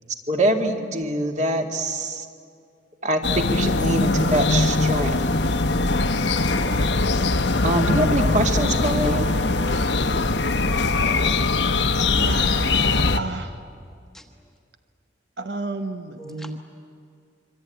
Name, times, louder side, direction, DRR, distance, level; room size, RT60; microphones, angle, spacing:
voice 1, 0.3-2.3 3.0-5.1 7.6-9.3, right 1 dB, 40° right, 4 dB, 2.1 m, -24 dB
sound 1, 3.2-13.2, left 3 dB, 70° left, 1.0 m, -21 dB
voice 2, 12.2-13.6 15.4-16.6, right 3 dB, 65° right, 7 dB, 1.1 m, -31 dB
voice 3, 16.2-16.6, right 1 dB, 5° left, 3 dB, 1.4 m, -47 dB
26.5 x 24.0 x 9.1 m, 2.3 s
head